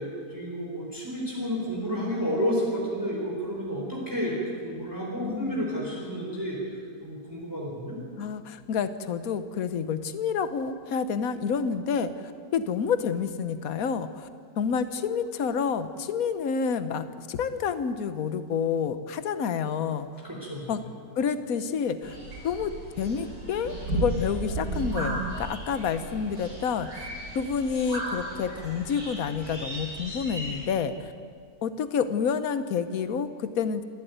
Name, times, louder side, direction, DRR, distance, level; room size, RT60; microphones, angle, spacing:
voice 1, 0.0-6.6 7.0-8.0 20.2-20.7, equal, 10° right, -3 dB, 4.3 m, -31 dB
voice 2, 5.2-5.7 8.2-12.1 12.5-14.3 14.6-20.1 20.7-20.8 21.2-22.2 22.4-27.1 27.3-31.1 31.6-33.8, left 6 dB, 70° left, 11 dB, 1.4 m, -29 dB
sound 1, 22.0-30.7, right 2 dB, 90° right, 6.9 m, -35 dB
27.0 x 12.5 x 9.3 m, 2.2 s
omnidirectional pair, 1.6 m